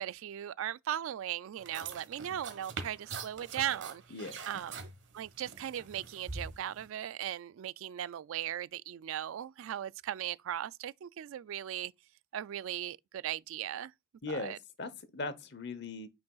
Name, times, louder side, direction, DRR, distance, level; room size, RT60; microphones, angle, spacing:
voice 1, 0.0-4.0 4.5-11.9 12.3-13.9 14.3-14.6, right 11 dB, 75° right, 0.3 m, -38 dB
sound 1, 1.6-6.9, right 4 dB, 60° right, 1.3 m, -44 dB
voice 2, 14.2-16.1, left 3 dB, 55° left, 0.9 m, -39 dB
9.2 x 5.1 x 2.3 m
head